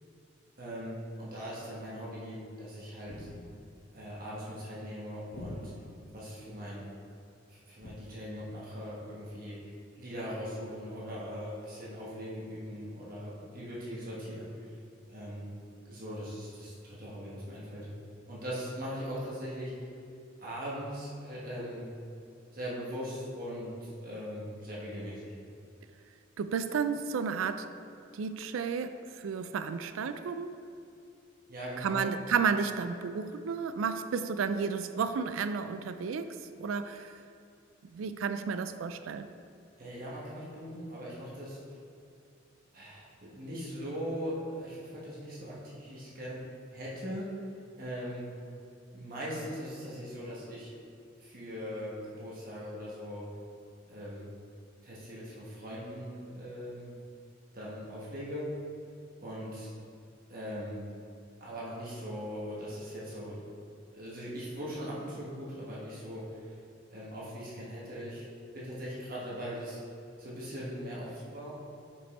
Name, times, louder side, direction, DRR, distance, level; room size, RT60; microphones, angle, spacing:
voice 1, 0.6-3.3 3.9-5.7 6.1-6.8 7.5-9.6 10.0-14.5 15.1-15.5 15.9-17.9 18.3-19.9 20.4-21.9 22.5-25.3 31.5-32.0 39.8-41.6 42.7-46.4 46.7-47.3 47.8-48.2 48.9-50.7 51.2-53.3 53.9-54.3 54.8-56.9 57.5-58.5 59.2-59.7 60.3-60.8 61.4-63.4 63.9-66.5 66.9-68.2 68.5-69.8 70.2-71.5, equal, 45° right, -6 dB, 1.2 m, -40 dB
sound 1, 3.1-3.8 5.3-6.1 7.8-8.0, left 1 dB, 45° left, 0.6 m, -45 dB
voice 2, 26.4-27.7 28.1-29.0 29.2-30.5 31.8-37.1 37.9-39.3, right 6 dB, 85° right, 10 dB, 0.4 m, -32 dB
5.4 x 5.3 x 4.1 m, 2.5 s
head